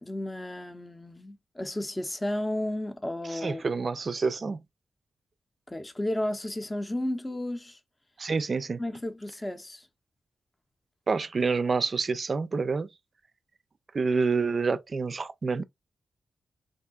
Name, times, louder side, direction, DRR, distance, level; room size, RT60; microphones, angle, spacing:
voice 1, 0.0-3.6 5.7-7.8 8.8-9.8, left 1 dB, 20° left, 0.6 m, -33 dB
voice 2, 3.3-4.6 8.2-8.8 11.1-12.9 13.9-15.6, right 4 dB, 50° right, 0.4 m, -28 dB
3.5 x 2.6 x 2.3 m
cardioid pair, 60°, 0 cm